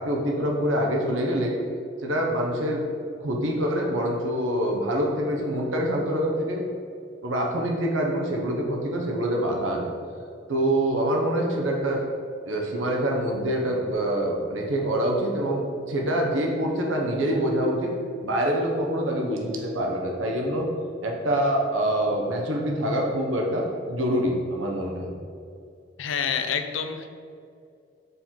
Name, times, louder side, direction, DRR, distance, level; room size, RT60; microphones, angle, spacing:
voice 1, 0.0-1.5 2.0-2.9 3.2-6.6 7.2-9.9 10.5-12.0 12.5-17.9 18.2-20.7 21.0-25.2, right 1 dB, 75° right, 0 dB, 0.9 m, -25 dB
voice 2, 26.0-27.1, left 7 dB, 75° left, 7 dB, 0.5 m, -28 dB
6.8 x 4.4 x 3.8 m, 2.4 s
head